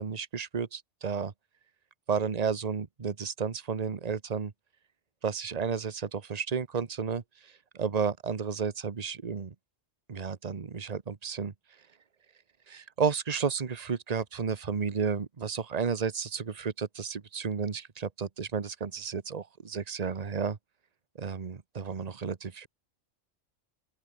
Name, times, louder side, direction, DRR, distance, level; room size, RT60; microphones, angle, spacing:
voice 1, 0.0-1.3 2.1-4.5 5.2-9.5 10.1-11.5 12.7-20.6 21.2-22.7, right 6 dB, 30° right, 1.1 m, -32 dB
open air
omnidirectional pair, 1.4 m